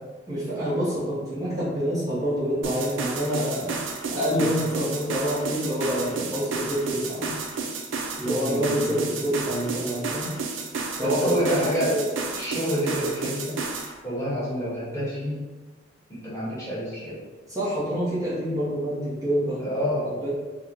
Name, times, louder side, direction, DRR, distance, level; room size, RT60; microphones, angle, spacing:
voice 1, 0.3-3.8 4.1-7.3 8.2-10.3 11.0-11.6 11.9-12.1 17.5-20.3, equal, 15° right, -10 dB, 0.6 m, -27 dB
sound 1, 2.6-13.9, right 4 dB, 85° right, 0.4 m, -32 dB
voice 2, 8.4-8.9 11.0-12.0 12.3-13.6 14.0-15.4 16.1-17.2 19.6-20.1, equal, 15° left, -9 dB, 1.0 m, -28 dB
2.9 x 2.0 x 3.7 m, 1.3 s
head